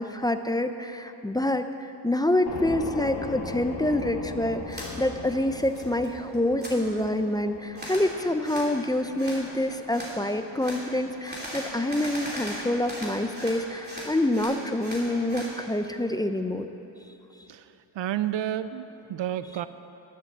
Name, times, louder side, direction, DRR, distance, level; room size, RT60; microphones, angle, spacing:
voice 1, 0.0-16.7, left 1 dB, 10° left, 8 dB, 0.4 m, -27 dB
sound 1, 2.5-14.4, left 4 dB, 60° left, 1.2 m, -40 dB
sound 2, 4.7-4.9 5.3-6.1 6.3-6.7 7.7-8.1 8.4-8.7 9.2-9.4 9.9-10.1 10.6-10.8 11.2-13.6 13.8-15.5, equal, 20° right, 2.8 m, -38 dB
voice 2, 17.5-19.7, right 11 dB, 75° right, 12 dB, 0.5 m, -31 dB
11.0 x 11.0 x 7.3 m, 3.0 s
wide cardioid pair, 160°, 45 cm